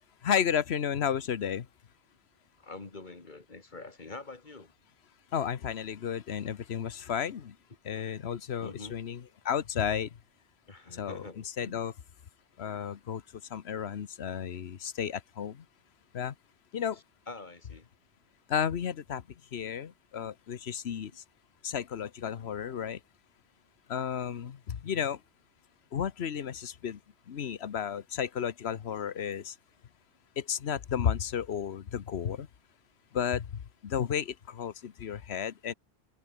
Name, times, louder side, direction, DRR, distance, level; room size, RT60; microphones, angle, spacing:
voice 1, 0.2-1.7 5.3-7.5 7.8-10.1 10.9-11.3 11.6-11.9 12.6-13.2 13.5-15.6 16.1-16.3 16.7-17.0 18.5-19.2 19.5-21.2 21.6-23.0 23.9-25.2 25.9-27.0 27.3-29.5 30.4-32.5 33.1-33.5 33.8-35.7, left 8 dB, 85° left, 1.2 m, -32 dB
voice 2, 2.6-4.7 8.6-9.0 10.7-11.9 16.9-17.9, left 3 dB, 50° left, 2.2 m, -45 dB
omnidirectional pair, 1.1 m